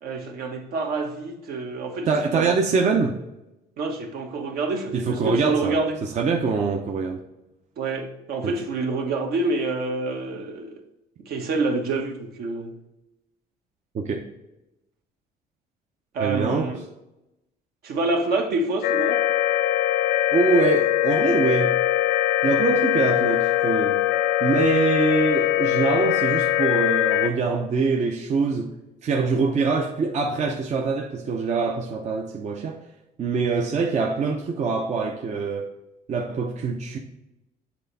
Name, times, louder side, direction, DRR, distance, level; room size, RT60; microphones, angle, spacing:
voice 1, 0.0-2.6 3.8-6.0 7.8-10.8 11.2-12.7 16.1-16.8 17.8-19.2, right 3 dB, 65° right, 1.2 m, -27 dB
voice 2, 2.1-3.1 4.9-5.7 6.0-7.2 8.4-8.5 13.9-14.2 16.2-16.7 20.3-21.8 22.4-24.0 24.4-28.7 29.0-32.8 33.2-35.7 36.1-37.0, right 4 dB, 45° right, 0.7 m, -24 dB
sound 1, 18.8-27.3, left 13 dB, 90° left, 0.5 m, -22 dB
7.9 x 3.4 x 4.0 m
cardioid pair, 110°, 17 cm